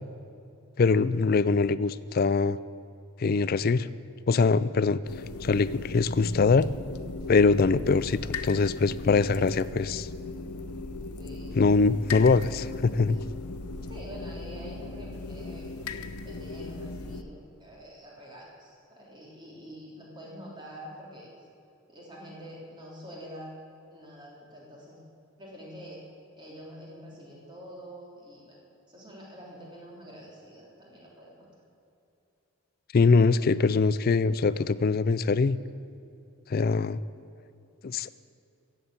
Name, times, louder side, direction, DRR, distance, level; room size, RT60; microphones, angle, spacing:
voice 1, 0.8-2.6 3.2-3.9 4.3-5.0 5.4-6.7 7.3-10.1 11.6-13.2 32.9-35.6 36.5-37.0 37.8-38.1, left 4 dB, 40° left, 16 dB, 0.4 m, -23 dB
sound 1, 5.1-17.2, left 3 dB, 90° left, 0.7 m, -38 dB
voice 2, 8.7-9.6 11.2-11.6 13.1-13.2 13.8-15.7 16.2-21.3 21.9-23.6 23.9-25.0 25.4-26.0 26.4-28.6 28.9-31.5, equal, 20° right, -4 dB, 3.2 m, -46 dB
16.0 x 7.7 x 8.7 m, 2.7 s
head